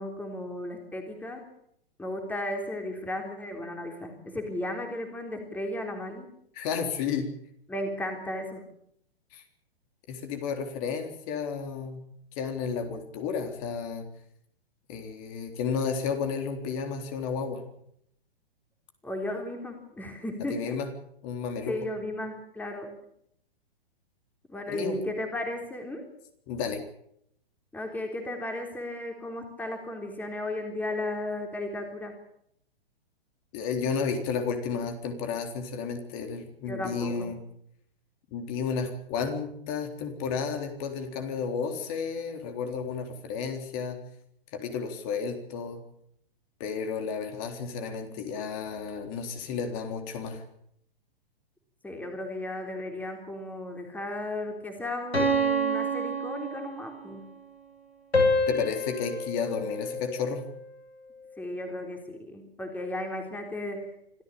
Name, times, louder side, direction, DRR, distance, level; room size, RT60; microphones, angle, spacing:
voice 1, 0.0-1.4 2.0-6.3 7.7-8.7 19.0-20.8 21.7-22.9 24.5-26.0 27.7-32.1 36.7-37.3 51.8-57.4 61.4-64.0, left 1 dB, 5° left, 3 dB, 3.6 m, -35 dB
voice 2, 6.6-7.3 9.3-9.4 10.1-12.0 12.4-14.1 14.9-17.6 20.5-20.9 21.2-21.7 24.7-25.0 26.5-26.8 33.5-37.4 38.3-44.0 44.5-45.8 46.6-50.4 58.5-60.5, left 6 dB, 35° left, 5 dB, 3.8 m, -32 dB
sound 1, 55.1-57.1 58.1-60.5, equal, 90° left, 6.9 m, -28 dB
26.0 x 14.5 x 8.6 m, 0.72 s
figure-of-eight pair, 120°, 30 cm